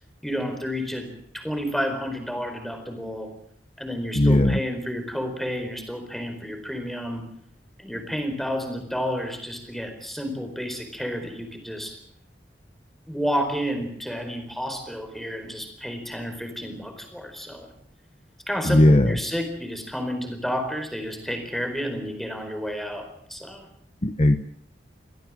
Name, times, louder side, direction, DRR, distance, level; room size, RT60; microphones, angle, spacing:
voice 1, 0.2-3.3 3.8-7.2 7.8-12.0 13.1-17.7 18.5-23.7, equal, ahead, 6 dB, 4.5 m, -31 dB
voice 2, 4.1-4.6 18.6-19.2 24.0-24.4, left 1 dB, 35° left, 9 dB, 1.0 m, -17 dB
25.0 x 16.5 x 7.7 m, 0.67 s
head